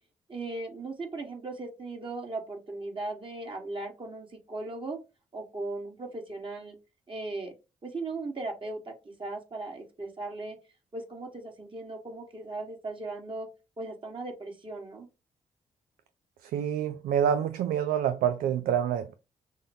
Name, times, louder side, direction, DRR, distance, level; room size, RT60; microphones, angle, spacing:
voice 1, 0.3-5.0 5.3-6.8 7.1-7.5 7.8-8.9 9.2-10.6 10.9-13.5 13.8-15.1, right 2 dB, 35° right, 1.5 m, -37 dB
voice 2, 16.4-19.1, right 9 dB, 85° right, 0.4 m, -27 dB
6.4 x 2.2 x 2.7 m
supercardioid pair, 50°, 14 cm